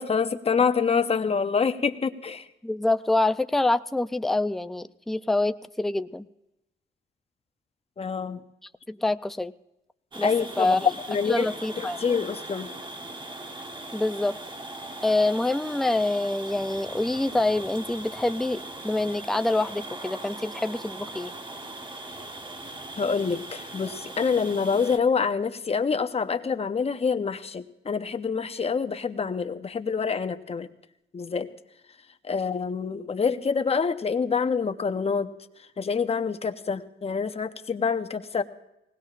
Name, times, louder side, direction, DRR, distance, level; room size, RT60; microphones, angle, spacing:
voice 1, 0.0-2.4 8.0-8.4 10.2-10.8 11.1-11.5 11.8-12.7 23.0-30.7 31.1-31.5 32.3-35.3 35.8-38.4, left 5 dB, 30° left, 9 dB, 0.8 m, -26 dB
voice 2, 2.6-6.3 8.9-9.5 10.2-10.3 10.6-10.9 11.3-12.0 13.9-14.4 15.0-21.3, left 2 dB, ahead, 10 dB, 0.4 m, -26 dB
sound 1, 10.1-25.0, right 1 dB, 25° right, 1.2 m, -40 dB
20.0 x 18.0 x 2.5 m, 0.90 s
cardioid pair, 90°, 20 cm